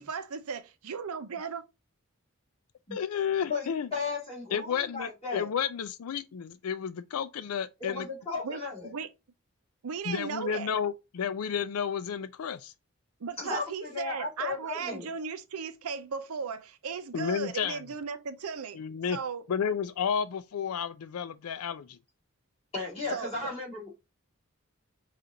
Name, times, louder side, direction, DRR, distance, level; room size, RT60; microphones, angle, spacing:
voice 1, 0.0-1.6 8.4-9.1 9.8-10.7 13.2-18.8 19.1-19.5 23.1-23.5, right 6 dB, 90° right, 0.6 m, -36 dB
voice 2, 2.9-3.9 4.5-8.1 10.0-12.7 17.1-17.8 18.7-19.2 19.5-22.0, left 7 dB, 85° left, 0.4 m, -32 dB
voice 3, 3.5-5.5 7.8-8.9 13.4-15.1 22.7-23.9, left 4 dB, 25° left, 2.4 m, -35 dB
5.0 x 2.5 x 2.7 m
head